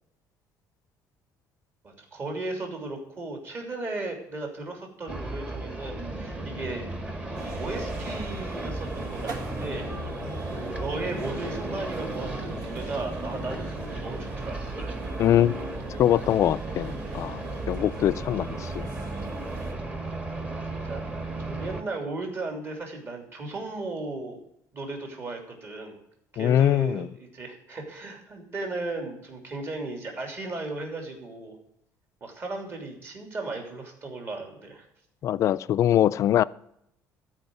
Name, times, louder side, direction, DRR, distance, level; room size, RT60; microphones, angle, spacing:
voice 1, 1.8-6.8 7.6-9.9 10.6-14.6 20.8-21.0 21.4-24.4 24.7-26.0 26.3-31.5 32.2-34.8, right 2 dB, 35° right, 3.0 m, -36 dB
sound 1, 5.1-21.8, right 2 dB, 20° right, 1.6 m, -35 dB
sound 2, 7.3-19.7, right 3 dB, 70° right, 1.9 m, -40 dB
voice 2, 15.2-15.5 16.0-17.4 17.7-18.9 26.4-27.1 35.2-36.4, left 11 dB, 50° left, 0.4 m, -23 dB
13.5 x 5.1 x 9.2 m
cardioid pair, 135°, 7 cm